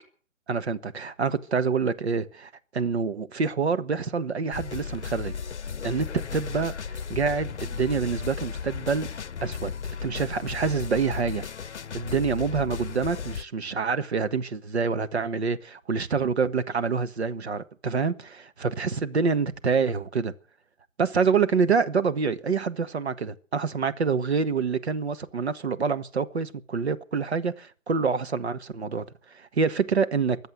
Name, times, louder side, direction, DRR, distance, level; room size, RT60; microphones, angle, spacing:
voice 1, 0.5-5.3 5.8-9.1 9.4-9.7 10.0-11.5 11.9-20.3 21.0-29.0 29.3-30.4, right 5 dB, 55° right, 1.4 m, -26 dB
sound 1, 4.5-13.4, left 6 dB, 60° left, 0.8 m, -35 dB
23.5 x 8.0 x 7.7 m
figure-of-eight pair, 150°, 39 cm